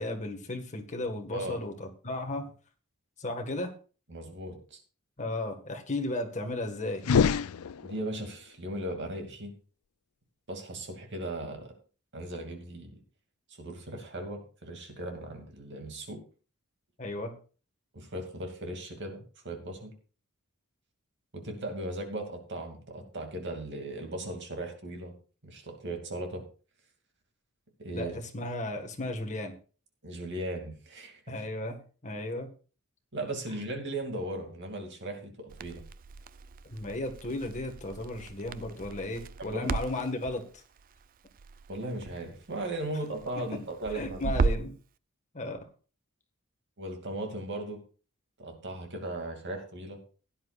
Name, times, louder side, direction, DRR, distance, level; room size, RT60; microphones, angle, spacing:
voice 1, 0.0-2.5 3.2-3.7 5.2-7.0 17.0-17.3 27.9-29.5 31.3-31.8 32.0-32.5 36.7-40.6 43.4-43.5 43.9-44.7 45.3-45.6, left 2 dB, 35° left, 4 dB, 1.7 m, -34 dB
voice 2, 4.1-4.8 7.8-9.5 10.5-11.7 12.1-13.0 13.6-16.2 17.9-19.9 21.3-25.1 25.4-26.4 27.8-28.1 30.0-31.2 33.1-35.8 39.4-39.7 41.7-44.5 46.8-47.8 48.4-50.0, right 1 dB, 55° right, 4 dB, 2.6 m, -37 dB
sound 1, 7.0-8.3, left 6 dB, 90° left, 0.5 m, -26 dB
Crackle, 35.5-44.8, right 4 dB, 40° right, 0.4 m, -36 dB
16.5 x 10.0 x 2.5 m, 0.37 s
head